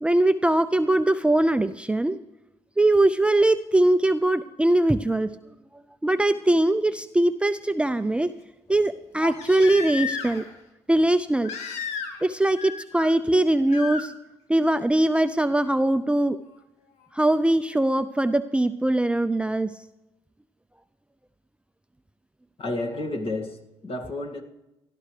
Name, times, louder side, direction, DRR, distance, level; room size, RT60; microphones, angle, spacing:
voice 1, 0.0-2.2 2.8-5.3 6.0-8.3 8.7-10.4 10.9-11.5 12.2-14.1 14.5-16.4 17.1-19.7, right 1 dB, 10° right, 11 dB, 0.5 m, -21 dB
Crying sobbing, 6.5-6.6 9.2-10.5 11.4-12.3 12.6-13.1 13.7-14.0 15.6-15.7, left 6 dB, 70° left, 1.4 m, -33 dB
voice 2, 22.6-24.4, left 2 dB, 50° left, 1 dB, 2.1 m, -31 dB
18.0 x 12.0 x 3.3 m, 0.96 s
hypercardioid pair, 55°, 12 cm